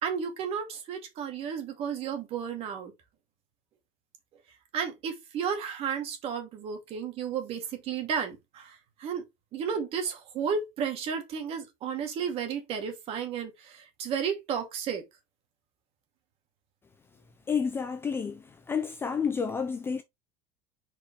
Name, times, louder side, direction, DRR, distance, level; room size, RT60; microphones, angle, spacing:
voice 1, 0.0-2.9 4.7-8.8 9.0-9.2 9.5-15.0, right 7 dB, 35° right, 2.2 m, -33 dB
voice 2, 17.5-18.4 18.7-20.0, left 6 dB, 15° left, 0.5 m, -30 dB
6.2 x 5.1 x 3.1 m
supercardioid pair, 160°, 16 cm